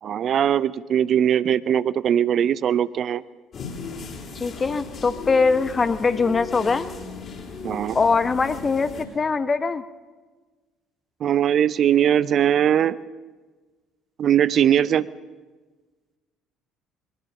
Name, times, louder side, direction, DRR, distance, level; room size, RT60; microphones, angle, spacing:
voice 1, 0.0-3.2 7.6-8.0 11.2-13.0 14.2-15.0, right 9 dB, 45° right, 19 dB, 0.6 m, -20 dB
sound 1, 3.5-9.1, left 4 dB, 45° left, 4.1 m, -36 dB
voice 2, 4.3-6.9 7.9-9.8, left 4 dB, 25° left, 12 dB, 1.0 m, -22 dB
21.5 x 20.5 x 7.3 m, 1.3 s
figure-of-eight pair, 55°, 0 cm